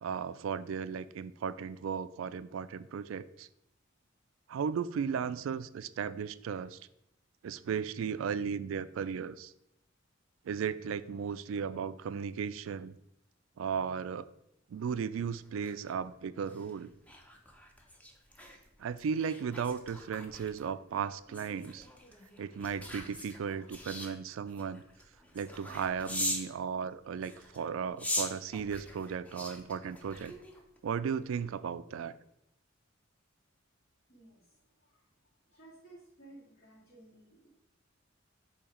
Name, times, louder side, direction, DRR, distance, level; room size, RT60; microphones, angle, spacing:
voice 1, 0.0-3.5 4.5-6.8 7.4-9.5 10.5-13.0 13.6-14.3 14.7-16.9 18.8-21.9 22.4-24.8 25.3-30.3 30.8-32.1, right 6 dB, 75° right, 15 dB, 0.3 m, -35 dB
sound 1, 15.4-26.5 27.2-30.8 31.2-31.4, left 1 dB, 5° left, 0.6 m, -42 dB
voice 2, 34.1-35.1 35.5-37.5, right 2 dB, 55° left, -10 dB, 2.1 m, -56 dB
7.0 x 2.8 x 4.9 m, 0.80 s
head